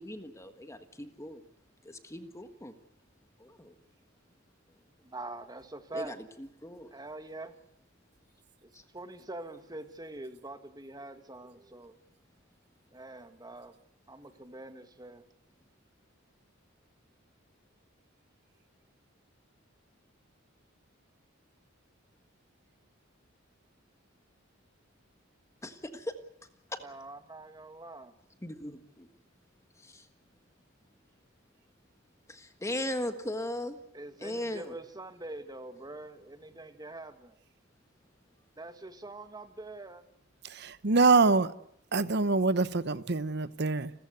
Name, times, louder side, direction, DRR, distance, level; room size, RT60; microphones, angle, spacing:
voice 1, 0.0-1.4 1.8-2.7 3.4-3.7 5.9-6.2 6.6-6.9 8.7-8.8 25.6-26.1 26.7-26.8 28.4-29.1 29.8-30.0 32.3-33.8 34.2-34.7, left 1 dB, 15° left, 1.5 m, -38 dB
voice 2, 5.0-6.2 6.9-7.6 8.6-12.0 12.9-13.8 14.1-15.2 26.8-28.1 33.9-37.4 38.6-40.0, right 2 dB, 20° right, 1.9 m, -44 dB
voice 3, 40.4-41.5 41.9-43.9, right 3 dB, 55° right, 1.0 m, -25 dB
29.5 x 14.5 x 8.1 m
head